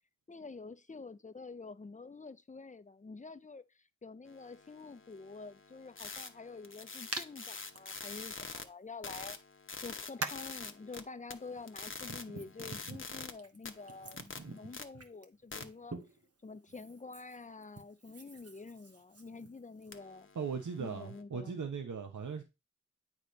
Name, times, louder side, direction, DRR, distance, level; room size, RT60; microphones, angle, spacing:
voice 1, 0.3-9.4 9.8-16.0 16.4-20.3 20.8-21.6, left 4 dB, 25° left, 0.5 m, -48 dB
sound 1, 4.3-8.6 9.0-11.0 11.3-13.3 13.6-14.8 15.5-15.6 19.9-21.2, left 4 dB, 45° left, 0.9 m, -46 dB
Hands, 7.1-7.3 7.7-7.8 9.1-9.2 10.2-10.5 11.4-16.3 16.7-20.0, right 3 dB, 55° right, 1.1 m, -45 dB
voice 2, 20.3-22.4, right 6 dB, 80° right, 0.8 m, -38 dB
8.5 x 3.0 x 5.1 m
wide cardioid pair, 60°, 30 cm